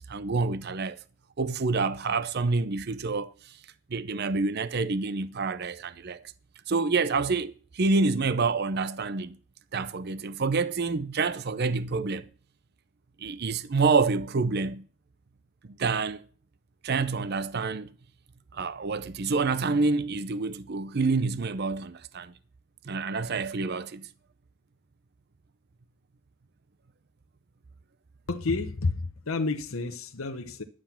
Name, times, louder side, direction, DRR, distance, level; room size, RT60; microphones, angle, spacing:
voice 1, 0.1-1.0 1.4-3.6 3.9-6.2 6.7-9.4 9.7-12.3 13.2-14.8 15.8-16.2 16.8-17.9 18.5-22.3 22.9-24.1, right 4 dB, 45° right, 0.5 m, -27 dB
voice 2, 28.3-30.6, left 3 dB, 70° left, 0.9 m, -30 dB
11.5 x 7.5 x 5.7 m
head